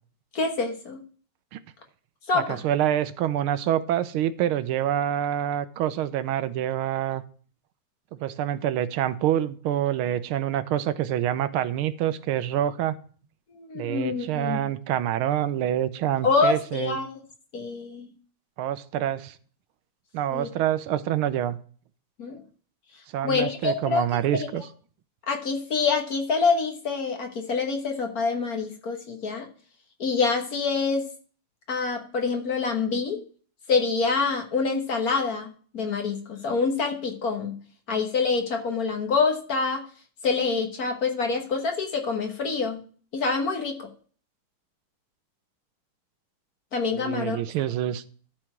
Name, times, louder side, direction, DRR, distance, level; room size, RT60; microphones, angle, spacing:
voice 1, 0.3-1.0 2.3-2.6 13.5-14.6 16.2-17.1 17.5-18.1 20.3-20.5 22.2-22.4 23.2-24.0 24.3-24.5 25.3-29.5 30.0-31.1 31.7-33.2 33.7-37.6 37.9-39.8 40.2-42.8 43.1-43.9 46.7-47.4, left 4 dB, 50° left, 1.6 m, -26 dB
voice 2, 2.3-7.2 8.2-12.9 13.7-17.0 18.6-19.4 20.1-21.6 23.1-24.6 47.0-48.0, right 11 dB, 90° right, 1.6 m, -26 dB
12.5 x 4.4 x 5.9 m
omnidirectional pair, 2.3 m